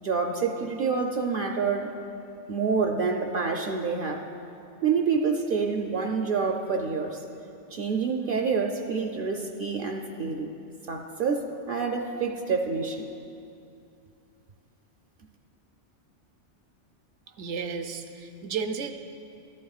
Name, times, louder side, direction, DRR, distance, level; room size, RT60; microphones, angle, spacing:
voice 1, 0.0-1.9 2.5-4.3 4.8-7.2 7.7-10.5 10.9-13.1, right 5 dB, 60° right, 3 dB, 0.7 m, -27 dB
voice 2, 17.4-18.9, right 5 dB, 80° right, 7 dB, 0.9 m, -33 dB
13.5 x 12.0 x 2.4 m, 2.6 s
omnidirectional pair, 1.2 m